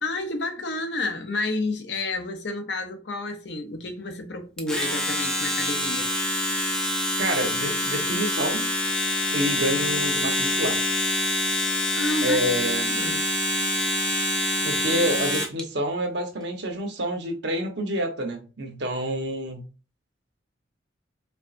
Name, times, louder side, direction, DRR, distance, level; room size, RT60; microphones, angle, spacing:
voice 1, 0.0-6.1 11.9-13.2, left 2 dB, 65° left, 0.8 m, -30 dB
Domestic sounds home sounds, 4.6-15.6, left 1 dB, 5° left, 0.6 m, -26 dB
voice 2, 7.2-8.7 9.3-10.8 12.2-13.0 14.6-19.7, equal, 60° right, 1.1 m, -28 dB
4.6 x 3.7 x 2.6 m
head